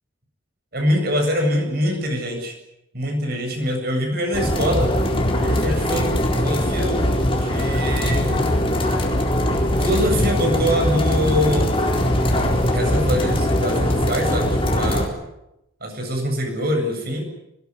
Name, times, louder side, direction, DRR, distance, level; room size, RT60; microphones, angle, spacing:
voice 1, 0.7-2.5 2.9-4.9 5.4-6.1 6.4-7.1 7.4-8.4 9.8-11.7 12.7-15.1 15.8-17.3, equal, 50° right, 3 dB, 7.8 m, -24 dB
sound 1, 4.3-15.1, left 1 dB, 25° left, 4.1 m, -21 dB
22.5 x 20.0 x 9.9 m, 0.88 s
head